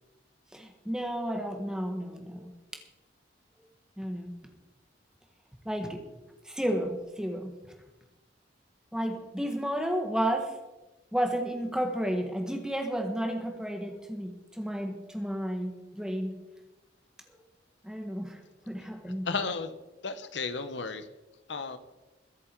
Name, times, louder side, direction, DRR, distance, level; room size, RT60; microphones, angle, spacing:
voice 1, 0.5-2.5 4.0-4.3 5.6-6.1 6.4-7.5 8.9-10.5 11.1-16.4 17.8-19.3, equal, 5° right, 4 dB, 1.6 m, -32 dB
voice 2, 19.2-19.7 20.0-21.1 21.5-21.8, left 4 dB, 80° left, 11 dB, 1.0 m, -33 dB
22.0 x 7.5 x 4.6 m, 1.1 s
head